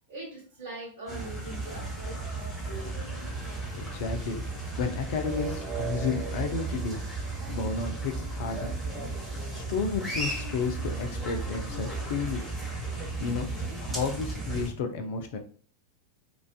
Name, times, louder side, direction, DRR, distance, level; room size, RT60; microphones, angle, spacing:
voice 1, 0.1-3.8, right 2 dB, 55° right, -3 dB, 0.9 m, -43 dB
sound 1, 1.1-14.7, right 3 dB, 5° right, 1.0 m, -34 dB
voice 2, 3.7-4.4 4.8-7.0 7.5-8.7 9.5-12.4 13.2-13.5 13.8-15.4, left 5 dB, 50° left, 6 dB, 0.4 m, -32 dB
2.4 x 2.3 x 2.2 m, 0.43 s
figure-of-eight pair, 90°, 0 cm